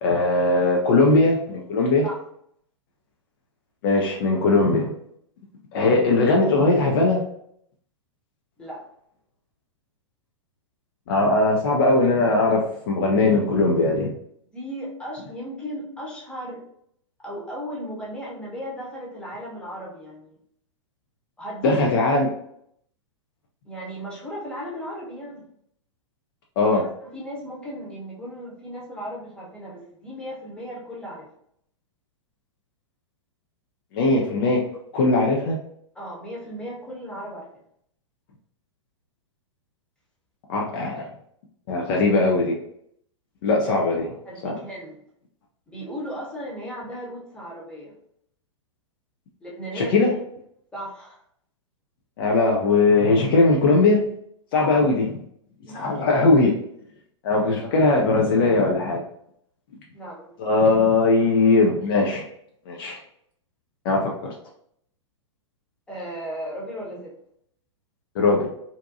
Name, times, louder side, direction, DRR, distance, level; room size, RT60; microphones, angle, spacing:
voice 1, 0.0-2.1 3.8-4.9 5.7-7.2 11.1-14.1 21.6-22.3 26.6-26.8 33.9-34.7 34.9-35.6 40.5-41.1 41.7-42.6 43.4-44.1 44.4-44.6 49.7-50.1 52.2-54.0 54.5-55.1 55.7-56.5 57.2-59.0 60.4-62.2 62.7-63.0 63.8-64.3 68.2-68.5, left 3 dB, 45° left, -1 dB, 0.5 m, -19 dB
voice 2, 14.5-16.6 17.2-20.4 21.4-21.9 23.6-25.5 26.7-31.3 35.9-37.6 44.2-45.0 45.7-47.9 49.4-50.0 50.7-51.2 54.5-54.8 55.7-55.9 59.9-60.6 65.9-67.1, equal, 5° left, -5 dB, 0.9 m, -36 dB
2.6 x 2.2 x 2.6 m, 0.69 s
figure-of-eight pair, 105°, 16 cm